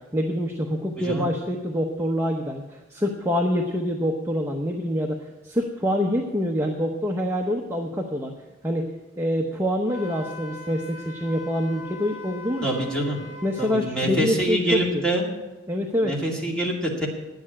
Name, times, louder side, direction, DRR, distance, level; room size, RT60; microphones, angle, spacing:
voice 1, 0.1-8.3 8.6-12.7 13.4-15.0 15.7-16.1, equal, 15° right, 1 dB, 0.7 m, -26 dB
voice 2, 1.0-1.3 12.6-13.2 13.6-15.2 16.0-17.1, right 1 dB, 5° left, -3 dB, 2.3 m, -25 dB
Wind instrument woodwind instrument, 9.9-13.8, left 2 dB, 70° left, 2.1 m, -41 dB
9.8 x 7.9 x 8.6 m, 1.1 s
head